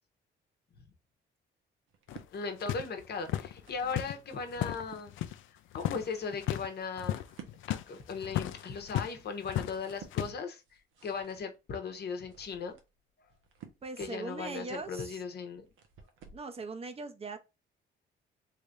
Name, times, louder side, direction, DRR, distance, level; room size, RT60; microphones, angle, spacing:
sound 1, 1.9-2.3 3.1-4.0 4.5-5.1 5.7-16.5, right 7 dB, 85° right, 1.0 m, -56 dB
sound 2, 2.1-5.4 5.7-6.1 6.3-6.7 7.0-9.2 9.4-10.3, left 13 dB, 80° left, 0.5 m, -35 dB
voice 1, 2.3-5.1 5.7-7.2 7.7-10.6 11.0-12.8 14.0-15.6, left 5 dB, 55° left, 1.1 m, -37 dB
voice 2, 13.8-15.2 16.3-17.4, right 3 dB, 30° right, 0.8 m, -40 dB
3.4 x 3.3 x 2.5 m
cardioid pair, 90°, 20 cm